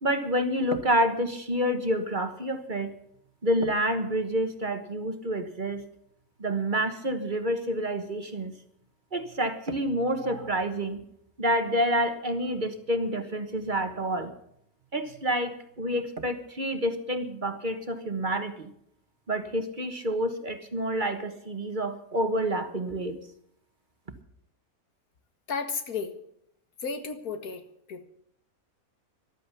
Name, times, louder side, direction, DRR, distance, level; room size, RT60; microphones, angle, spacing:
voice 1, 0.0-2.9 3.4-5.8 6.4-8.5 9.1-11.0 11.4-14.3 14.9-18.7 19.3-23.2, equal, 35° right, 8 dB, 1.3 m, -28 dB
voice 2, 25.5-26.1 26.8-27.6 27.9-28.0, left 5 dB, 80° left, 8 dB, 2.1 m, -33 dB
14.0 x 12.5 x 7.0 m, 0.71 s
omnidirectional pair, 1.6 m